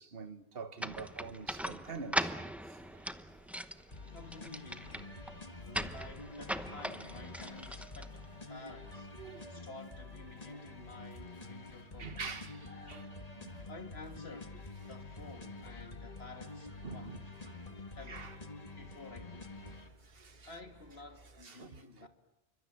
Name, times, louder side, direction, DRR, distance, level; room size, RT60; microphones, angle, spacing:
voice 1, 0.0-2.4 2.6-3.1 5.5-5.9 9.2-9.7 12.0-13.0 13.4-13.6 16.8-17.8 18.1-18.4 20.0-20.5 21.4-22.1, right 4 dB, 65° right, 1.5 m, -46 dB
sound 1, 0.8-8.6, equal, ahead, 0.8 m, -40 dB
sound 2, 2.8-21.5, right 2 dB, 50° right, 2.3 m, -63 dB
sound 3, 3.9-19.9, left 3 dB, 40° left, 1.8 m, -48 dB
voice 2, 4.1-5.0 5.6-9.1 9.5-13.2 13.7-14.6 14.9-17.1 17.9-18.3 18.8-19.5 20.5-22.1, left 3 dB, 80° left, 2.8 m, -52 dB
29.0 x 24.5 x 7.6 m
omnidirectional pair, 1.0 m